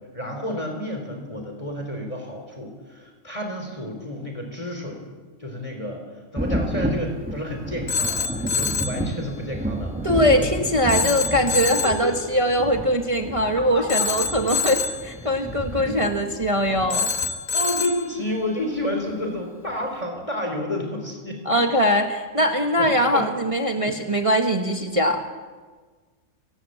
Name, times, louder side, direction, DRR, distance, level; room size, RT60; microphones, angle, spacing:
voice 1, 0.1-5.0 5.4-6.0 6.3-10.4 11.2-11.3 11.8-11.9 13.6-14.1 15.8-16.0 17.5-21.4 22.8-23.3 23.7-24.0, left 1 dB, 20° left, 3 dB, 3.7 m, -30 dB
Thunder, 6.4-17.8 19.1-19.2 19.7-19.8, right 1 dB, 5° right, 1.2 m, -31 dB
Telephone, 7.9-9.0 10.9-12.1 13.9-15.1 16.9-18.1, left 5 dB, 65° left, 1.5 m, -26 dB
voice 2, 10.0-17.1 21.4-25.2, equal, 25° right, 3 dB, 1.5 m, -21 dB
29.5 x 14.0 x 7.9 m, 1.4 s
omnidirectional pair, 1.5 m